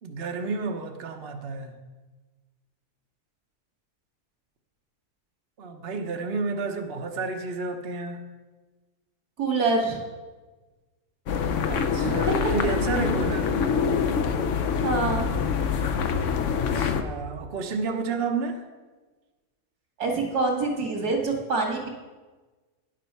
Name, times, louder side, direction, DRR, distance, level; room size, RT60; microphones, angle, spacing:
voice 1, 0.0-1.7 5.6-8.2 11.7-13.6 16.4-18.6, right 4 dB, 45° right, 4 dB, 1.0 m, -31 dB
voice 2, 9.4-10.0 12.0-12.5 14.8-15.4 20.0-21.9, right 3 dB, 75° right, 1 dB, 2.5 m, -26 dB
sound 1, 11.3-17.0, left 6 dB, 60° left, 1.0 m, -25 dB
10.5 x 7.6 x 5.6 m, 1.3 s
omnidirectional pair, 1.6 m